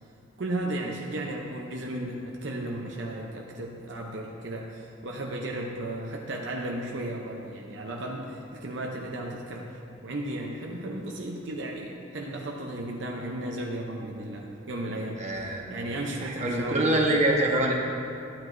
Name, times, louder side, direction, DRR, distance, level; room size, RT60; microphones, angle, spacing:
voice 1, 0.4-9.8 10.0-16.9, right 1 dB, 65° right, 0 dB, 0.7 m, -35 dB
voice 2, 15.2-15.7 16.2-17.7, right 1 dB, 35° right, -1 dB, 1.1 m, -25 dB
13.0 x 9.2 x 2.6 m, 2.6 s
head